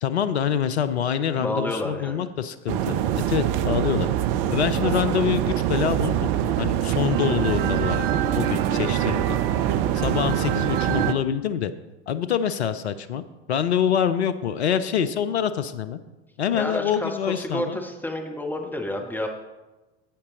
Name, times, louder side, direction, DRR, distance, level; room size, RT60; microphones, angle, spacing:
voice 1, 0.0-4.1 4.5-6.3 6.6-9.4 9.9-11.7 12.1-13.2 13.5-16.0 16.4-17.8, left 8 dB, 70° left, 12 dB, 0.7 m, -25 dB
voice 2, 1.4-2.2 16.5-19.3, left 1 dB, 5° left, 2 dB, 1.2 m, -30 dB
sound 1, 2.7-11.1, right 11 dB, 40° right, 0.5 m, -24 dB
10.0 x 8.4 x 3.8 m, 1.1 s
figure-of-eight pair, 75°, 34 cm